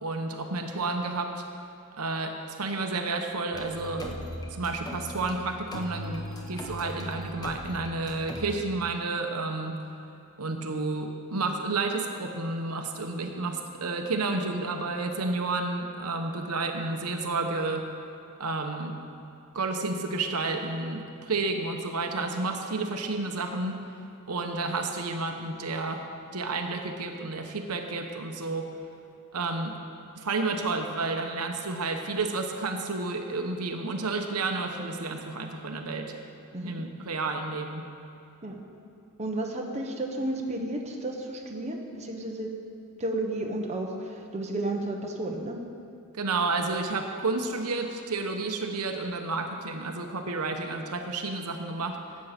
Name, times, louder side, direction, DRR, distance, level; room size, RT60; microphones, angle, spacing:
voice 1, 0.0-1.4 2.0-4.2 4.5-9.8 10.4-17.9 18.4-19.0 19.5-23.8 24.3-26.0 26.3-28.7 29.3-29.8 30.2-36.1 36.6-37.9 46.1-52.0, right 3 dB, 80° right, 4 dB, 1.0 m, -31 dB
sound 1, 3.5-5.3 5.7-8.5, equal, 15° left, 1.1 m, -38 dB
voice 2, 39.2-42.5 43.0-45.6, right 1 dB, 30° right, 0 dB, 1.1 m, -32 dB
13.0 x 8.5 x 5.9 m, 2.6 s
head